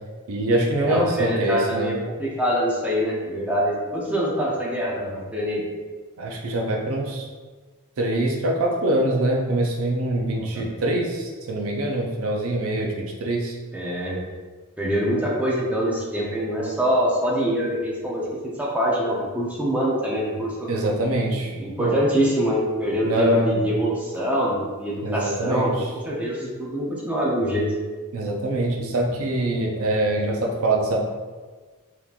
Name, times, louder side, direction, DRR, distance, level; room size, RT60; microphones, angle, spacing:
voice 1, 0.3-2.0 6.2-7.3 8.0-13.6 20.7-21.5 21.8-22.0 23.0-23.7 25.0-25.9 28.1-31.0, right 1 dB, 65° right, 0 dB, 0.5 m, -24 dB
voice 2, 0.8-5.6 10.4-10.6 13.7-14.2 14.8-18.2 18.6-20.7 21.6-25.7 26.0-27.7, equal, 5° right, -5 dB, 0.6 m, -24 dB
3.6 x 2.9 x 2.4 m, 1.4 s
head